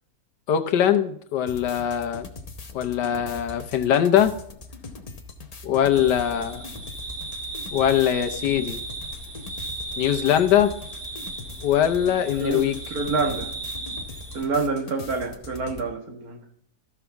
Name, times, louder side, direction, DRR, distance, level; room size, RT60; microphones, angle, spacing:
voice 1, 0.5-2.3 2.7-4.3 5.6-6.6 7.7-8.8 10.0-10.7 11.6-12.8, left 10 dB, 80° left, 7 dB, 1.4 m, -21 dB
sound 1, 1.5-15.9, left 3 dB, 40° left, 0.6 m, -41 dB
sound 2, 5.9-14.4, right 2 dB, 40° right, 1.9 m, -36 dB
voice 2, 12.4-13.5 14.3-16.4, right 4 dB, 60° right, 2 dB, 1.9 m, -27 dB
13.5 x 6.1 x 3.5 m, 0.68 s
omnidirectional pair, 1.8 m